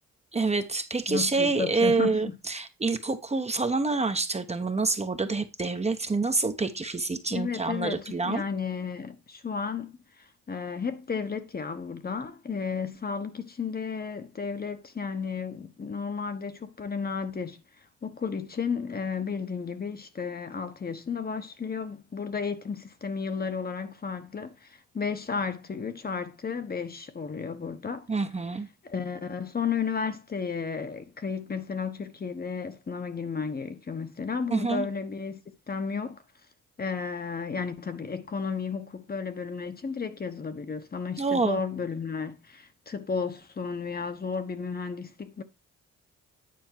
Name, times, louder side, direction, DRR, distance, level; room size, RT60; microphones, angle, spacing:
voice 1, 0.3-8.4 28.1-28.7 34.5-34.9 41.2-41.6, right 3 dB, 20° right, 1.0 m, -27 dB
voice 2, 1.1-2.4 7.3-17.6 18.0-28.1 28.8-35.4 35.7-36.2 36.8-45.4, left 5 dB, 30° left, 1.1 m, -33 dB
9.6 x 4.4 x 4.6 m
cardioid pair, 90°, 30 cm